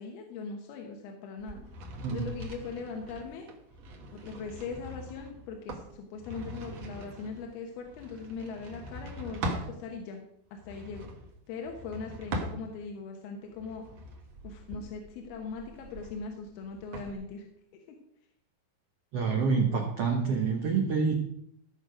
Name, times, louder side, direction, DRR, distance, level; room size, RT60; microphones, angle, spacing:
voice 1, 0.0-1.6 2.1-3.5 4.1-10.2 10.5-11.1 11.5-13.8 14.4-17.5, left 4 dB, 75° left, 2 dB, 3.1 m, -40 dB
sound 1, 1.4-9.7 10.5-13.0 13.5-17.1, right 1 dB, 55° right, 2.0 m, -42 dB
voice 2, 19.1-21.1, right 5 dB, 75° right, 2 dB, 1.4 m, -27 dB
15.0 x 6.5 x 5.1 m, 0.73 s
omnidirectional pair, 4.6 m